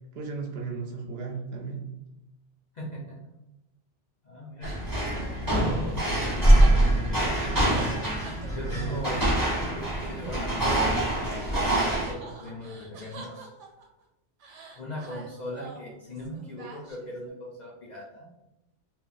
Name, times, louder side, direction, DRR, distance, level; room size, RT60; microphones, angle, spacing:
voice 1, 0.1-1.9 8.5-9.2 12.3-12.6, right 4 dB, 65° right, 1 dB, 0.7 m, -36 dB
voice 2, 2.7-3.3 4.2-4.7 5.6-7.5 8.5-9.3 10.0-10.8 11.1-13.5 14.8-18.3, equal, 55° left, -3 dB, 0.5 m, -39 dB
sound 1, 4.6-12.1, right 1 dB, 20° right, 0.7 m, -24 dB
sound 2, 4.6-11.1 11.4-14.0 14.4-17.3, right 3 dB, 90° right, 0.9 m, -46 dB
2.2 x 2.2 x 3.8 m, 0.90 s
omnidirectional pair, 1.2 m